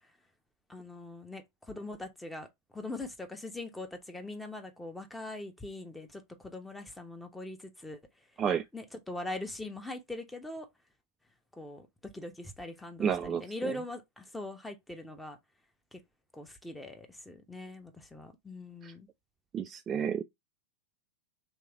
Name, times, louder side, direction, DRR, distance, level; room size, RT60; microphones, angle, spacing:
voice 1, 0.7-2.5 2.7-8.0 8.7-10.7 11.6-15.4 15.9-16.0 16.3-19.1, left 2 dB, 5° left, 0.9 m, -42 dB
voice 2, 13.0-13.4 18.8-18.9 19.5-20.2, right 7 dB, 25° right, 0.3 m, -30 dB
3.4 x 3.1 x 4.7 m
figure-of-eight pair, 90°, 0 cm